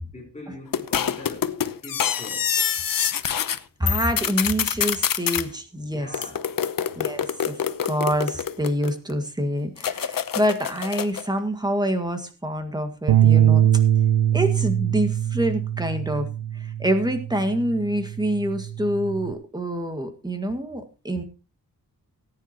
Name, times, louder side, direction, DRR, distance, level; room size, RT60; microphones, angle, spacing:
voice 1, 0.1-1.5 1.8-2.5 5.8-6.4, left 2 dB, 20° left, 4.3 m, -41 dB
sound 1, 0.7-3.6 3.9-5.4 6.1-9.1 9.8-11.3, left 8 dB, 60° left, 0.9 m, -26 dB
voice 2, 3.8-6.1 7.0-13.7 14.3-16.3 16.5-21.2, equal, 10° right, 1.9 m, -26 dB
sound 2, 13.1-19.3, right 10 dB, 85° right, 0.8 m, -22 dB
18.5 x 9.8 x 3.0 m
wide cardioid pair, 170°, 38 cm